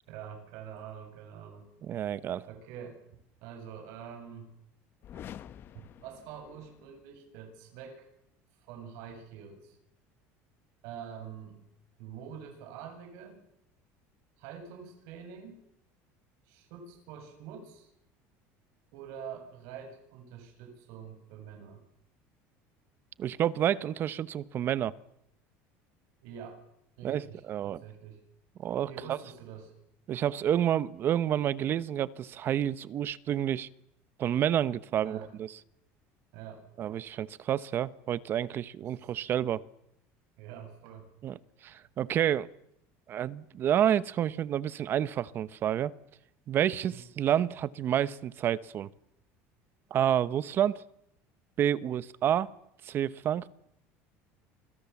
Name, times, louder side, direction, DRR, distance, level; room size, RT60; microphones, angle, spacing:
voice 1, 0.1-1.7 2.5-3.0 3.4-4.5 5.1-5.2 5.7-8.1 8.5-9.8 10.8-11.6 12.0-13.4 14.4-15.6 16.4-17.9 18.9-21.8 26.2-26.6 27.0-28.2 28.9-29.7 35.0-35.3 36.3-36.6 38.8-39.1 40.4-41.1 46.9-47.0, right 8 dB, 70° right, 4 dB, 8.0 m, -46 dB
voice 2, 1.9-2.5 23.2-24.9 27.0-27.8 28.6-29.2 30.1-33.7 34.2-35.5 36.8-39.6 41.2-41.4 41.6-42.5 43.1-45.9 46.5-48.9 49.9-50.8 51.6-52.5 52.8-53.5, right 10 dB, 35° right, 17 dB, 1.0 m, -29 dB
sound 1, 5.0-7.0, left 10 dB, 40° left, 1.1 m, -48 dB
27.5 x 26.0 x 7.2 m, 0.77 s
cardioid pair, 150°, 6 cm